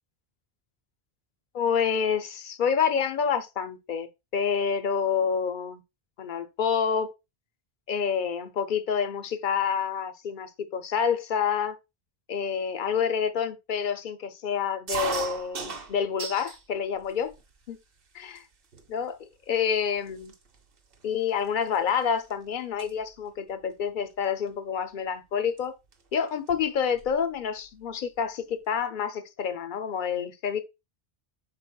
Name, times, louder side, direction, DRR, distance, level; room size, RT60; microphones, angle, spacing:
voice 1, 1.5-4.1 4.3-5.8 6.2-7.1 7.9-11.8 12.3-17.3 17.7-17.8 18.1-18.4 18.9-20.3 21.0-25.7 26.1-30.6, left 7 dB, 60° left, 0.7 m, -28 dB
sound 1, 14.9-16.6 17.0-17.7 18.4-18.5 18.7-19.1 19.7-19.8 20.1-22.3 22.6-22.9 24.2-24.5 25.6-25.7 25.9-26.0 26.3-27.2, right 6 dB, 65° right, 1.0 m, -36 dB
5.2 x 4.2 x 2.2 m
omnidirectional pair, 1.0 m